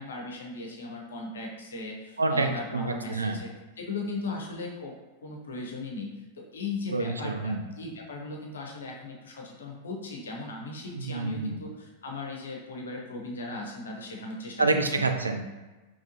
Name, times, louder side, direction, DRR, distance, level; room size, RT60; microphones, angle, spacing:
voice 1, 0.0-3.5 3.8-4.9 5.2-6.1 6.5-14.6 15.0-15.1, left 3 dB, 65° left, 0 dB, 0.7 m, -37 dB
voice 2, 2.2-3.4 6.9-7.6 10.9-11.6 14.6-15.4, right 3 dB, 75° right, 5 dB, 0.3 m, -27 dB
3.6 x 3.0 x 2.7 m, 1.2 s
figure-of-eight pair, 90°, 0 cm